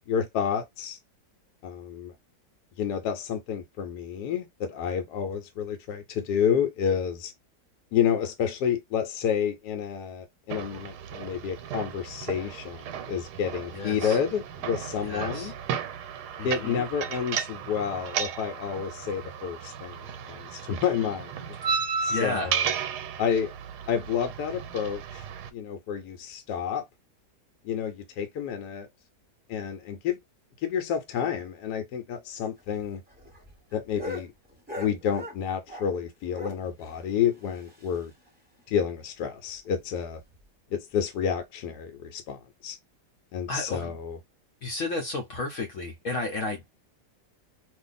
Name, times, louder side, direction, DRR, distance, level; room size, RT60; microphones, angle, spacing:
voice 1, 0.1-1.0 1.6-2.1 2.8-7.3 7.9-15.5 16.4-21.5 22.0-22.7 23.2-23.5 23.9-25.2 25.5-26.8 27.6-28.9 29.5-30.2 30.6-33.0 33.7-34.3 34.8-38.1 38.7-40.2 40.7-42.8 43.3-44.2, left 8 dB, 85° left, 1.2 m, -30 dB
sound 1, 10.5-25.5, right 7 dB, 85° right, 1.2 m, -34 dB
voice 2, 13.7-14.2 15.0-15.5 16.4-16.9 21.6-21.8 22.1-22.5 43.5-44.0 44.6-46.6, left 2 dB, 60° left, 0.9 m, -32 dB
sound 2, 32.6-36.0 36.3-38.3 38.6-38.7 39.0-39.1 39.5-39.6 40.1-40.4 41.3-41.4, left 2 dB, 5° right, 0.9 m, -41 dB
2.6 x 2.4 x 3.9 m
omnidirectional pair, 1.8 m